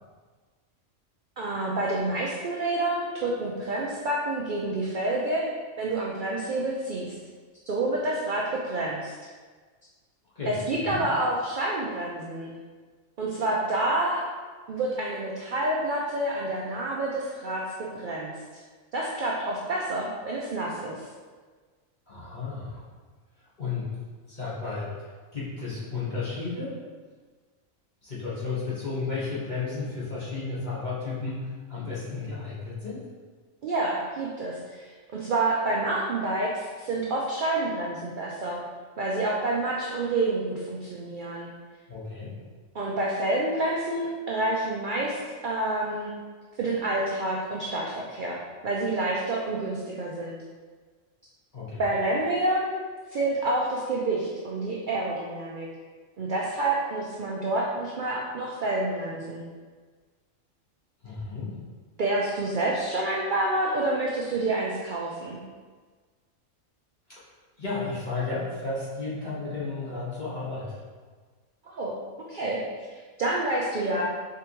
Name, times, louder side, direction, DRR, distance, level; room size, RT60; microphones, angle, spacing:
voice 1, 1.4-5.5 5.8-7.1 7.7-9.1 10.4-12.5 13.2-14.3 14.7-17.6 17.9-18.3 18.9-21.0 33.6-38.6 39.0-41.5 42.7-46.1 46.6-48.4 48.6-50.3 51.8-52.8 53.1-55.7 56.2-59.4 62.0-65.4 71.6-72.0 72.3-72.6 73.2-74.0, right 2 dB, 55° right, -3 dB, 0.5 m, -28 dB
voice 2, 10.3-11.0 22.1-22.8 23.6-23.9 24.3-26.8 28.0-33.0 41.9-42.4 51.5-51.8 61.0-61.6 67.1-67.2 67.6-70.8, left 4 dB, 35° left, -9 dB, 1.4 m, -33 dB
4.7 x 3.4 x 3.0 m, 1.5 s
omnidirectional pair, 1.4 m